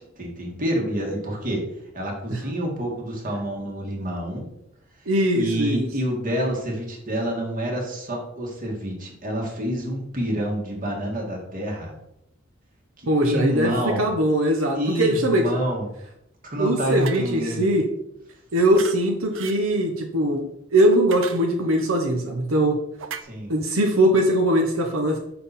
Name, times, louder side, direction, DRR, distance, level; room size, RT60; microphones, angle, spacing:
voice 1, 0.0-1.7 1.9-4.5 5.3-12.0 13.0-14.1 14.7-15.9 16.4-17.7 23.2-23.5, equal, 45° right, 0 dB, 1.8 m, -28 dB
voice 2, 5.1-5.9 13.1-15.4 16.6-17.8 18.5-22.8 23.5-25.2, right 1 dB, 90° right, 3 dB, 0.9 m, -21 dB
sound 1, 17.0-17.3 18.7-19.0 19.3-19.6 20.9-21.8 23.0-23.2, right 7 dB, 70° right, 0.5 m, -36 dB
5.8 x 5.8 x 4.1 m, 0.81 s
head